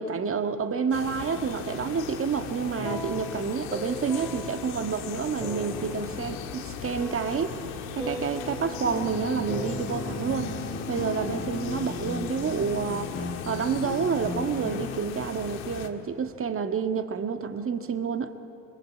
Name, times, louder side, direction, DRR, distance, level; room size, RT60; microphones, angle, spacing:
voice 1, 0.0-7.6 7.9-10.6 10.9-18.3, right 6 dB, 30° right, 7 dB, 1.8 m, -29 dB
sound 1, 0.9-15.9, left 8 dB, 75° left, 1.9 m, -38 dB
sound 2, 2.8-11.4, equal, ahead, 2.8 m, -40 dB
sound 3, 8.8-15.0, left 3 dB, 30° left, 1.6 m, -36 dB
29.0 x 21.0 x 8.6 m, 2.8 s
supercardioid pair, 85°, 40 cm